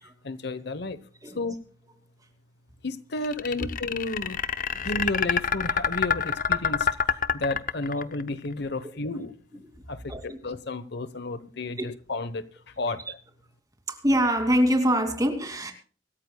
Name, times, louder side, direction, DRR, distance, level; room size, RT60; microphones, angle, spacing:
voice 1, 0.2-1.0 1.3-1.6 2.8-4.4 4.8-9.6 9.9-12.4 12.8-13.2, left 2 dB, 60° left, 1.0 m, -32 dB
sound 1, 3.2-8.3, left 7 dB, 45° left, 0.7 m, -26 dB
voice 2, 13.9-15.7, equal, 20° right, 2.6 m, -24 dB
25.0 x 14.0 x 2.3 m
head